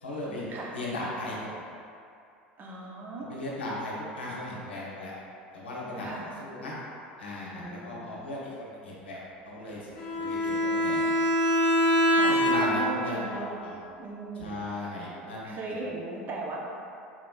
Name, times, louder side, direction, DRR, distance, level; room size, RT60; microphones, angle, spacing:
voice 1, 0.0-1.6 3.2-5.2 5.5-6.7 7.2-9.2 9.4-11.0 12.2-13.8 14.4-15.9, left 1 dB, 80° left, -5 dB, 0.7 m, -37 dB
voice 2, 2.6-3.3 6.0-6.3 7.5-8.1 12.1-13.6 14.0-14.6 15.4-16.6, right 2 dB, 35° right, -2 dB, 0.6 m, -37 dB
Bowed string instrument, 10.0-13.0, equal, 50° left, 1.2 m, -24 dB
3.8 x 3.0 x 2.3 m, 2.5 s
hypercardioid pair, 75°, 6 cm